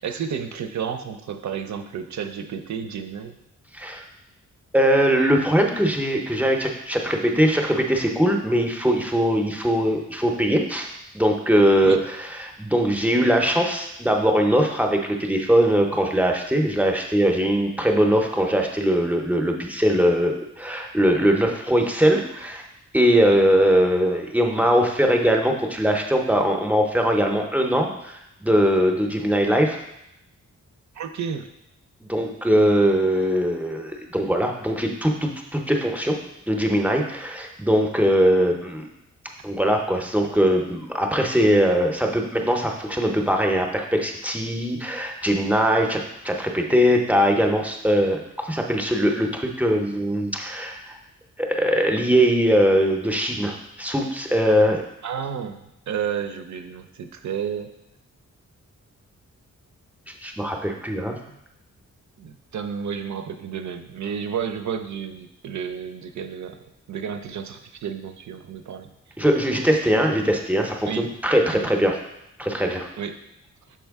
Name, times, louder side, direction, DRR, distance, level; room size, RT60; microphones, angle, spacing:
voice 1, 0.0-3.4 11.8-12.0 23.3-23.4 30.9-31.5 55.0-57.7 61.3-61.4 62.2-68.9 70.8-71.1 71.5-71.7 73.0-73.2, right 7 dB, 65° right, 8 dB, 0.6 m, -31 dB
voice 2, 3.7-4.0 4.7-10.9 11.1-22.6 22.9-29.8 32.0-36.2 36.5-38.8 39.4-51.0 51.4-54.8 60.2-61.2 69.2-72.0 72.4-72.9, equal, 5° right, 2 dB, 0.6 m, -21 dB
6.1 x 4.4 x 3.5 m, 0.82 s
wide cardioid pair, 145°, 31 cm